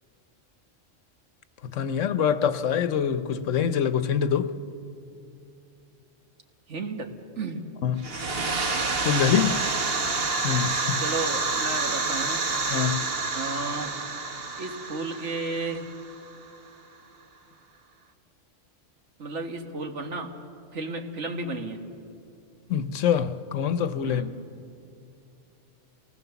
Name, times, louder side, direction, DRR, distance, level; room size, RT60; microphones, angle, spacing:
voice 1, 1.7-4.5 7.8-8.0 9.0-9.6 10.4-11.0 12.7-13.0 22.7-24.2, left 8 dB, 80° left, 1.2 m, -25 dB
voice 2, 6.7-7.7 11.0-12.4 13.3-13.9 14.6-15.9 19.2-20.3 20.7-21.8 24.0-24.4, right 3 dB, 65° right, 1.9 m, -33 dB
sound 1, 8.0-16.5, right 3 dB, 50° right, 1.4 m, -28 dB
27.5 x 19.0 x 7.0 m
omnidirectional pair, 1.3 m